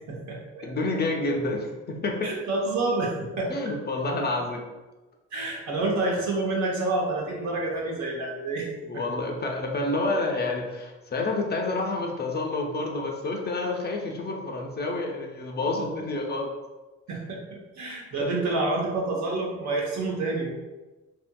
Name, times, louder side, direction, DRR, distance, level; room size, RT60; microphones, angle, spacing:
voice 1, 0.1-0.7 2.2-3.5 5.3-8.7 15.7-15.8 17.1-20.5, right 2 dB, 65° right, -2 dB, 0.9 m, -28 dB
voice 2, 0.6-2.3 3.5-4.7 8.9-16.5, left 2 dB, 35° left, 1 dB, 0.4 m, -29 dB
2.7 x 2.6 x 2.2 m, 1.2 s
cardioid pair, 90°, 30 cm